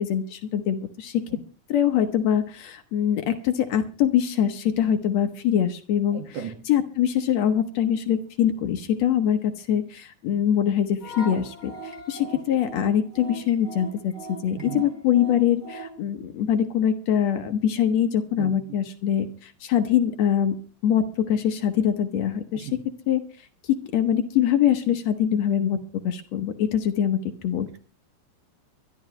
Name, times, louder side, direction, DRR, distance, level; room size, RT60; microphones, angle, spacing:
voice 1, 0.0-1.4 1.7-6.4 6.7-14.1 14.4-20.6 20.8-22.7 23.1-23.2 23.6-25.8 26.0-27.8, left 9 dB, 65° left, 9 dB, 1.9 m, -23 dB
voice 2, 6.1-6.6 12.3-12.4 14.6-14.8 18.4-18.8 22.5-22.8, right 9 dB, 75° right, 7 dB, 3.2 m, -36 dB
sound 1, 11.0-16.0, right 2 dB, 15° right, 3.3 m, -39 dB
23.5 x 12.0 x 3.1 m, 0.38 s
omnidirectional pair, 3.6 m